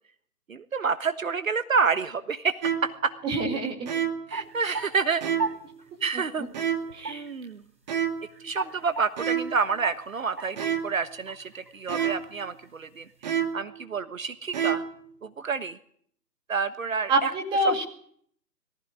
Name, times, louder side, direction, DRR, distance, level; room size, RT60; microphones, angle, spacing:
voice 1, 0.5-3.1 4.3-5.2 6.0-6.5 7.1-7.6 8.4-13.1 13.5-14.8 15.2-15.8 16.5-17.3, right 5 dB, 50° right, 11 dB, 1.4 m, -28 dB
sound 1, 2.6-3.0 3.9-4.4 5.2-5.7 6.5-7.0 7.9-8.4 9.2-9.7 10.6-11.1 11.9-12.3 13.2-13.7 14.5-15.0, right 8 dB, 25° right, 1.9 m, -29 dB
voice 2, 3.2-4.0 6.9-7.2 17.1-17.8, right 2 dB, 10° right, 0 dB, 2.4 m, -26 dB
sound 2, 4.3-5.5 5.8-5.9 6.3-6.5 6.9-7.6 7.9-8.0 8.3-12.2 12.6-12.7 13.1-13.3, right 4 dB, 80° right, 7.2 m, -36 dB
22.5 x 15.0 x 9.9 m, 0.62 s
figure-of-eight pair, 150°, 50 cm